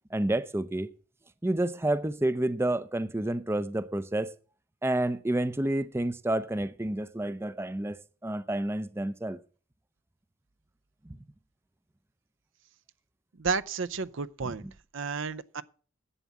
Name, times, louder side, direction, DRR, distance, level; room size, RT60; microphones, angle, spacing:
voice 1, 0.1-0.9 1.4-4.3 4.8-9.4 14.4-14.5, right 1 dB, 10° right, 0.5 m, -29 dB
voice 2, 13.4-14.6 14.9-15.6, right 5 dB, 65° right, 0.6 m, -32 dB
11.0 x 8.2 x 7.2 m
head